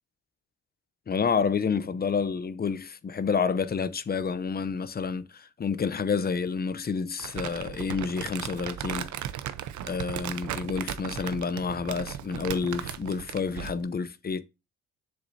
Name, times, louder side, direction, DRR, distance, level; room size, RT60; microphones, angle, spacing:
voice 1, 1.1-9.1 9.9-14.4, left 5 dB, 30° left, 0.7 m, -29 dB
Crumpling crinkling, 7.2-13.8, right 10 dB, 75° right, 0.8 m, -36 dB
7.2 x 6.7 x 2.7 m
cardioid pair, 90°, 30 cm